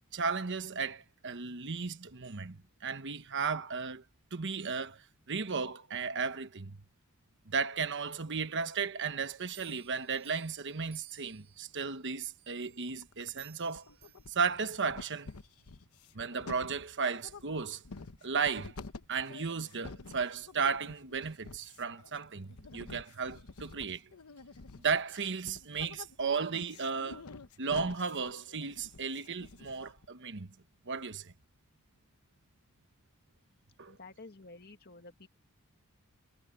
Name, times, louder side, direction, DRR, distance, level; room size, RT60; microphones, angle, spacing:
voice 1, 0.1-4.0 4.3-5.0 5.3-6.8 7.5-13.9 14.3-15.3 16.1-17.8 18.2-18.8 19.1-24.1 24.8-27.2 27.6-30.5 30.9-31.3 33.8-34.0, right 5 dB, 55° right, 1.2 m, -35 dB
sound 1, 9.2-11.8 12.4-14.7 15.2-15.3, right 15 dB, 75° right, 6.1 m, -56 dB
sound 2, 12.9-13.4 13.7-14.6 14.9-30.1, left 3 dB, 75° left, 1.0 m, -49 dB
voice 2, 33.9-35.3, left 3 dB, 45° left, 2.1 m, -51 dB
head